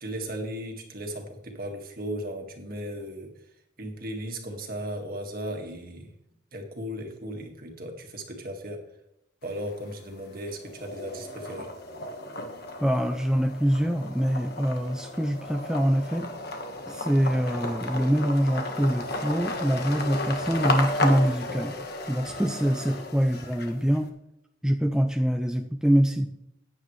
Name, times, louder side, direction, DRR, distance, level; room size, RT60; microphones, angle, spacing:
voice 1, 0.0-3.3 3.8-6.1 6.5-8.8 9.4-11.7, equal, 50° right, 3 dB, 1.9 m, -36 dB
sound 1, 9.4-10.1 10.5-24.0, left 2 dB, 55° left, 1.5 m, -34 dB
voice 2, 12.8-16.3 16.9-21.7 22.1-24.1 24.6-26.3, equal, 5° right, 5 dB, 0.4 m, -24 dB
15.0 x 9.7 x 3.2 m, 0.81 s
head